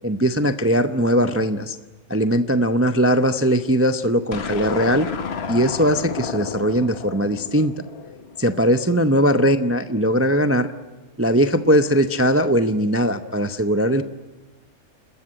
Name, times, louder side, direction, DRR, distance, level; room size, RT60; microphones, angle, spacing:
voice 1, 0.0-1.8 2.1-5.1 5.5-7.8 8.4-10.7 11.2-14.0, equal, 20° right, 9 dB, 0.4 m, -20 dB
sound 1, 4.3-8.7, left 5 dB, 50° left, 1.3 m, -31 dB
30.0 x 14.0 x 8.9 m, 1.2 s
omnidirectional pair, 1.5 m